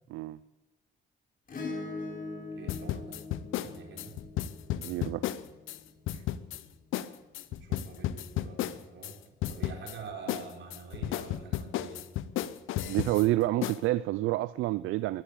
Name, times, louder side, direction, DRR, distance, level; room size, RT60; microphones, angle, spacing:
Acoustic guitar / Strum, 1.5-6.1 8.0-8.1, left 3 dB, 45° left, 5.0 m, -42 dB
voice 1, 2.5-3.2 3.6-4.2 7.6-9.2 9.5-12.1, right 5 dB, 65° right, 3 dB, 4.1 m, -46 dB
sound 1, 2.7-5.8 6.1-6.6 6.9-7.1 7.3-9.1 9.4-10.0 10.3-13.3 13.6-13.8, left 12 dB, 85° left, 0.8 m, -33 dB
voice 2, 4.7-5.2 12.9-15.2, right 16 dB, 90° right, 17 dB, 0.4 m, -28 dB
14.0 x 11.5 x 8.5 m, 1.2 s
cardioid pair, 90°, 20 cm